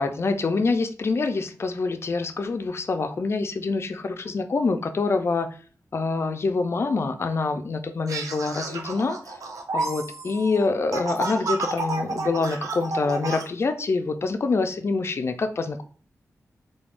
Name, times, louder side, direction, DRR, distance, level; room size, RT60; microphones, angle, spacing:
voice 1, 0.0-5.6 5.9-9.4 9.7-15.8, left 3 dB, 50° left, 7 dB, 0.3 m, -26 dB
sound 1, 8.1-13.5, right 3 dB, 75° right, 0.4 m, -31 dB
3.3 x 2.2 x 2.4 m, 0.41 s
wide cardioid pair, 105°, 6 cm